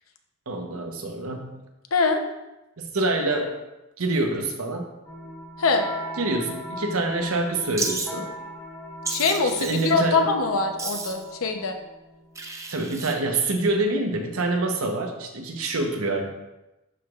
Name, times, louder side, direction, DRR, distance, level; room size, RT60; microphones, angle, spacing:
voice 1, 0.5-1.6 2.8-3.6 4.0-4.9 6.2-8.3 9.4-10.3 12.7-16.3, right 2 dB, 75° right, 3 dB, 1.0 m, -26 dB
voice 2, 1.9-2.2 3.3-3.4 5.6-5.8 9.1-11.8, left 4 dB, 75° left, 5 dB, 0.8 m, -23 dB
sound 1, 5.1-12.5, equal, 10° left, 1.2 m, -39 dB
Wild animals, 7.8-8.1 9.0-9.9 10.8-11.3 12.3-13.1, right 3 dB, 15° right, 0.5 m, -32 dB
11.5 x 4.8 x 2.4 m, 0.98 s
head